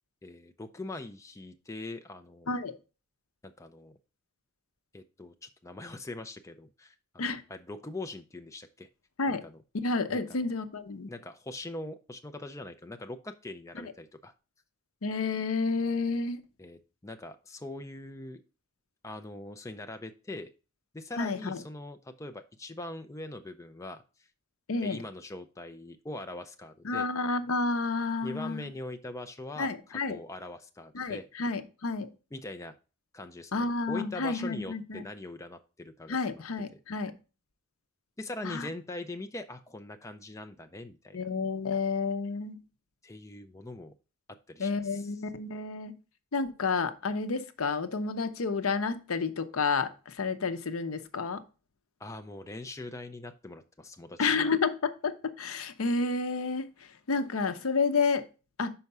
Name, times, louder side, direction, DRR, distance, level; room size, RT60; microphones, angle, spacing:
voice 1, 0.2-2.7 3.4-4.0 4.9-8.9 9.3-9.6 10.1-10.5 11.1-14.3 16.6-18.4 19.0-20.5 20.9-24.0 24.8-27.1 28.2-31.3 32.3-32.7 33.1-36.4 38.2-41.3 43.0-43.9 44.5-45.1 52.0-54.5, left 2 dB, 15° left, 8 dB, 0.4 m, -42 dB
voice 2, 9.7-11.1 13.8-13.9 15.0-16.4 21.2-21.6 24.7-25.0 26.8-28.7 29.6-30.2 30.9-32.1 33.5-35.0 36.1-37.1 38.4-38.7 41.1-42.6 44.6-45.9 46.3-51.4 54.2-56.7 57.1-58.2 58.6-58.7, left 4 dB, 80° left, 11 dB, 0.7 m, -30 dB
5.7 x 4.7 x 5.4 m, 0.33 s
head